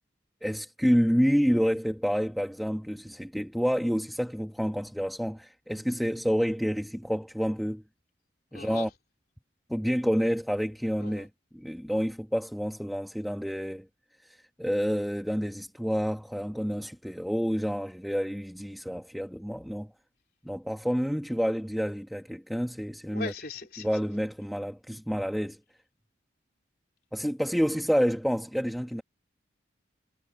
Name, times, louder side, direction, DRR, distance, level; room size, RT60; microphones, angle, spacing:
voice 1, 0.4-7.8 8.5-8.9 9.7-13.9 14.2-19.9 20.4-23.3 23.8-25.6 27.1-29.0, equal, ahead, 1.4 m, -29 dB
voice 2, 8.5-8.9 11.0-11.2 23.1-23.9, left 3 dB, 55° left, 4.0 m, -39 dB
head